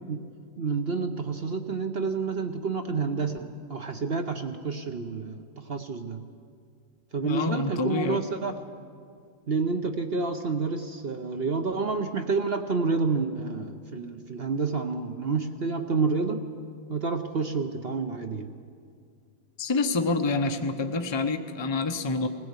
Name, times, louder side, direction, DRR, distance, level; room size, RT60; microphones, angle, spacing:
voice 1, 0.6-5.4 5.7-6.2 7.1-8.5 9.5-16.5 16.9-18.5, right 4 dB, 45° right, 6 dB, 0.8 m, -29 dB
voice 2, 7.2-8.2 19.6-22.3, left 3 dB, 25° left, 7 dB, 0.5 m, -27 dB
20.5 x 16.5 x 8.1 m, 2.2 s
omnidirectional pair, 2.0 m